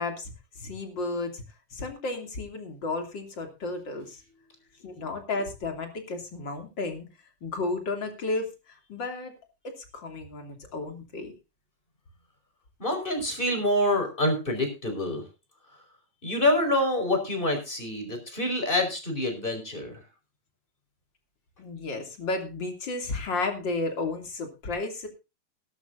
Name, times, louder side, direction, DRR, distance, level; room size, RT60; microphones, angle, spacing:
voice 1, 0.0-1.4 1.7-4.2 4.8-7.1 7.4-8.5 8.9-9.3 9.6-11.3 21.6-25.1, left 3 dB, 35° left, 4 dB, 3.3 m, -33 dB
voice 2, 12.8-15.2 16.2-20.0, left 1 dB, 15° left, 5 dB, 4.9 m, -26 dB
19.5 x 12.0 x 2.6 m, 0.29 s
omnidirectional pair, 3.8 m